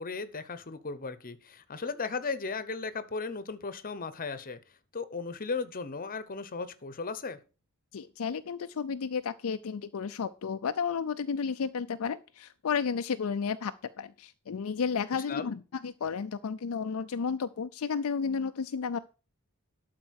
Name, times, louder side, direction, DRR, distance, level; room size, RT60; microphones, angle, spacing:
voice 1, 0.0-4.6 4.9-7.4 15.3-15.5, left 4 dB, 40° left, 13 dB, 0.9 m, -36 dB
voice 2, 7.9-13.7 14.0-19.0, left 6 dB, 65° left, 10 dB, 0.5 m, -32 dB
12.0 x 4.5 x 6.4 m, 0.34 s
head